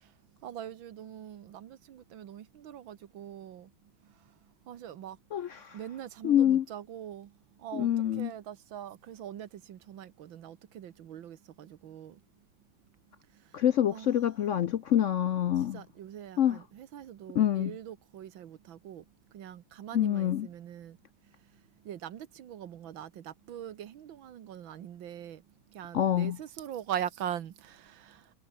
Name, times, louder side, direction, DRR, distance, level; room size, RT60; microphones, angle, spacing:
voice 1, 0.4-3.7 4.7-5.2 5.7-7.3 7.6-7.9 8.2-12.2 13.9-14.1 15.7-19.0 19.3-21.0 21.9-25.4 25.8-28.1, right 10 dB, 80° right, 2.0 m, -42 dB
voice 2, 5.3-5.8 6.2-6.7 7.7-8.3 13.5-15.8 16.4-16.6 17.3-17.8 19.9-20.5 25.9-26.4, left 10 dB, 75° left, 0.6 m, -26 dB
omnidirectional pair, 2.1 m